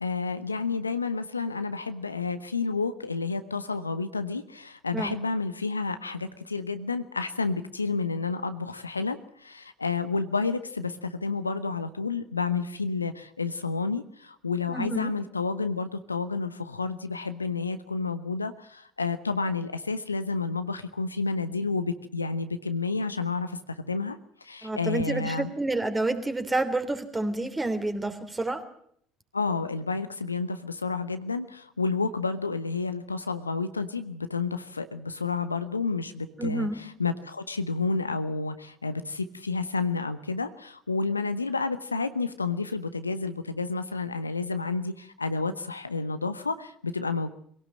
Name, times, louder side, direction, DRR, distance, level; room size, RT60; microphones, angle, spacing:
voice 1, 0.0-25.5 29.3-47.3, left 4 dB, 90° left, 11 dB, 0.9 m, -30 dB
voice 2, 14.7-15.1 24.6-28.6 36.4-36.8, right 2 dB, 15° right, 8 dB, 3.2 m, -29 dB
24.0 x 17.5 x 7.6 m, 0.66 s
figure-of-eight pair, 60°, 0 cm